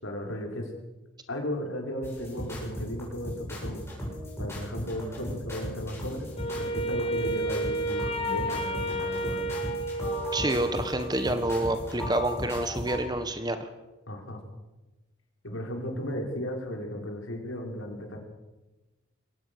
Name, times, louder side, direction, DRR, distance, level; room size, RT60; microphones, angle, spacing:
voice 1, 0.0-0.7 1.3-3.8 4.4-6.3 6.6-9.6 14.1-14.4 15.4-18.2, left 1 dB, 80° left, 2 dB, 4.8 m, -35 dB
sound 1, 2.0-13.0, equal, 10° left, 7.9 m, -36 dB
Wind instrument woodwind instrument, 6.3-10.7, right 1 dB, 30° left, 1.8 m, -31 dB
voice 2, 10.3-13.7, right 1 dB, 20° right, 9 dB, 1.5 m, -28 dB
22.5 x 18.0 x 6.9 m, 1.1 s
head